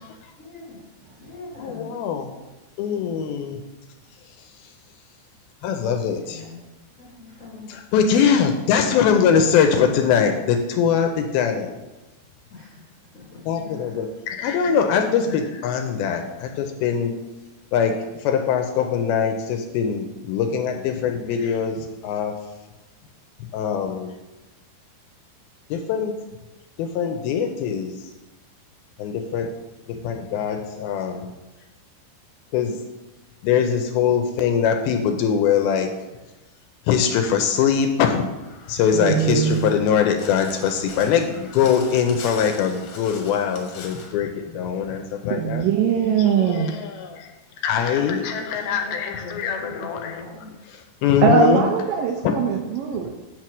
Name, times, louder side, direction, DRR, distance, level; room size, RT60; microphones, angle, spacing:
voice 1, 0.4-0.8 1.2-1.9 6.0-6.6 7.0-7.8 8.6-9.5 12.5-14.1 14.5-15.0 21.7-21.8 47.9-50.5, left 3 dB, 30° left, -5 dB, 1.5 m, -40 dB
voice 2, 1.6-2.3 2.8-3.6 5.6-6.4 7.7-11.7 13.5-17.1 17.7-17.9 18.2-22.3 23.5-24.1 25.7-26.1 26.8-27.9 29.0-29.5 29.9-31.3 32.5-32.8 33.4-35.9 36.9-38.3 38.7-45.7 46.2-47.3 47.6-50.1 51.0-51.7, left 7 dB, 80° left, 5 dB, 2.3 m, -22 dB
Crow, 38.3-44.1, left 4 dB, 60° left, 2.1 m, -41 dB
voice 3, 38.9-39.7 45.3-46.7 51.2-53.1, right 7 dB, 80° right, 2 dB, 2.1 m, -21 dB
8.1 x 4.5 x 6.0 m, 1.1 s
omnidirectional pair, 4.6 m